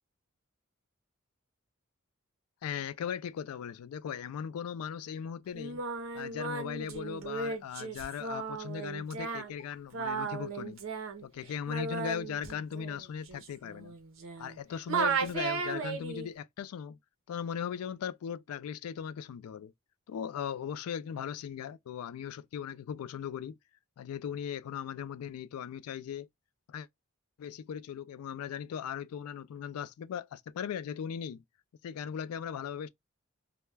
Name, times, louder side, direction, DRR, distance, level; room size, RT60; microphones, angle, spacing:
voice 1, 2.6-5.8 6.1-10.8 11.2-13.9 14.4-17.0 17.3-19.7 20.1-23.5 24.0-26.3 26.7-26.9 27.4-31.4 31.8-32.9, left 8 dB, 90° left, 0.3 m, -38 dB
Singing, 5.5-14.6 14.9-16.3, right 5 dB, 65° right, 0.6 m, -35 dB
2.2 x 2.1 x 3.1 m
head